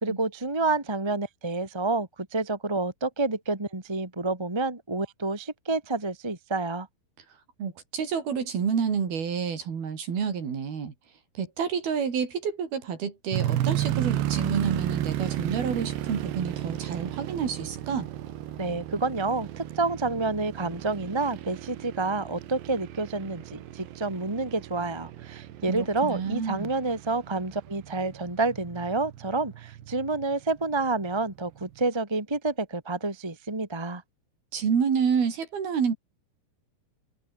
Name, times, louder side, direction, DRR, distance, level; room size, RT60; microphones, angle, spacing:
voice 1, 0.0-6.9 18.6-34.0, right 3 dB, 15° right, 0.9 m, -29 dB
voice 2, 7.6-10.9 11.4-18.1 25.7-26.7 34.5-35.9, right 6 dB, 55° right, 5.6 m, -29 dB
sound 1, 13.3-30.3 30.9-31.0 31.6-31.8, right 13 dB, 70° right, 3.6 m, -34 dB
omnidirectional pair, 5.5 m